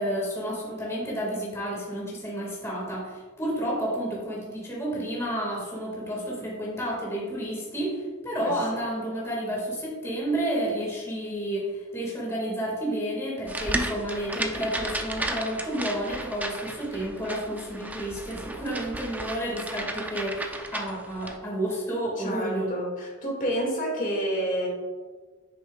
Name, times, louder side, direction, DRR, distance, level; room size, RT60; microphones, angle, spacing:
voice 1, 0.0-22.7, right 1 dB, 15° left, -5 dB, 2.0 m, -31 dB
sound 1, 13.5-21.4, right 1 dB, 10° right, 0.6 m, -34 dB
voice 2, 22.2-24.7, right 1 dB, 40° left, -2 dB, 2.1 m, -29 dB
9.1 x 6.9 x 2.4 m, 1.4 s
head